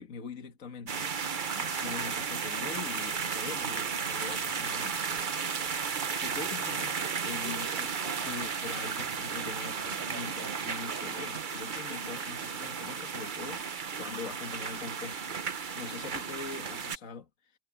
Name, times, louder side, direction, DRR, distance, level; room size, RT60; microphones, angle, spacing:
voice 1, 0.0-8.0 8.2-17.6, left 5 dB, 45° left, 1.9 m, -43 dB
sound 1, 0.9-17.0, right 6 dB, 50° right, 0.5 m, -34 dB
Laughter, 7.4-10.3, right 1 dB, 15° right, 5.5 m, -53 dB
omnidirectional pair, 2.1 m